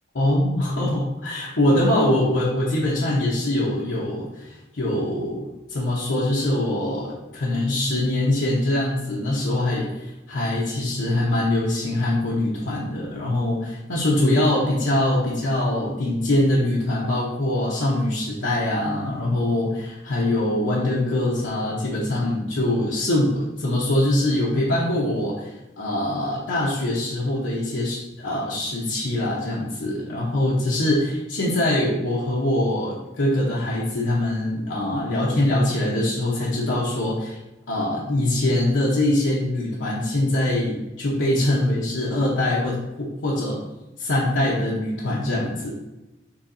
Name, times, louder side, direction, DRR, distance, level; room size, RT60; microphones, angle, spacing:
voice 1, 0.1-37.4 37.7-43.6 44.0-45.7, left 1 dB, 90° left, -5 dB, 0.8 m, -23 dB
6.9 x 2.8 x 2.6 m, 1.0 s
head